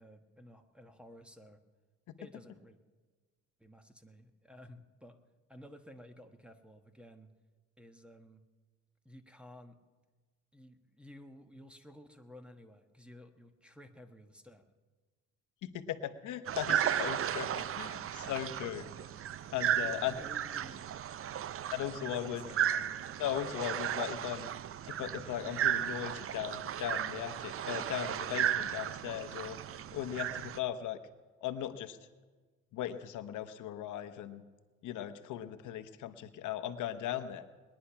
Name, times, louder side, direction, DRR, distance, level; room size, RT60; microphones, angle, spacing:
voice 1, 0.0-1.6 2.2-2.8 3.6-5.2 5.5-7.3 7.8-8.4 9.0-9.8 10.5-14.7 19.7-21.1 21.9-23.0, left 1 dB, 5° right, 7 dB, 1.2 m, -54 dB
voice 2, 15.6-19.0 19.5-20.2 21.7-22.4 23.2-24.5 24.9-29.6 29.9-31.0 31.4-32.0 32.7-34.4 34.8-37.4, left 11 dB, 80° left, 10 dB, 0.9 m, -38 dB
sound 1, 16.5-30.6, right 10 dB, 45° right, 0.5 m, -35 dB
20.5 x 10.0 x 5.8 m, 1.4 s
cardioid pair, 90°, 30 cm